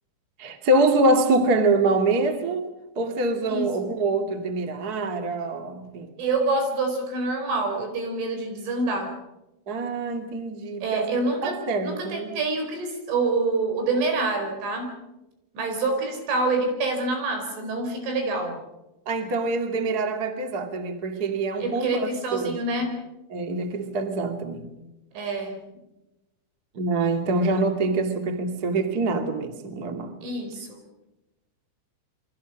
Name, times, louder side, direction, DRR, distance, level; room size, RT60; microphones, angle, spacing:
voice 1, 0.4-2.7 2.9-6.1 9.7-11.2 11.4-12.3 19.0-22.6 23.3-24.7 26.7-30.1, right 2 dB, 35° right, 5 dB, 1.4 m, -25 dB
voice 2, 6.2-9.1 10.8-15.0 15.6-18.6 21.6-23.0 25.2-25.6 30.2-30.8, right 3 dB, 65° right, 5 dB, 7.1 m, -26 dB
29.0 x 24.0 x 6.1 m, 0.98 s
omnidirectional pair, 6.0 m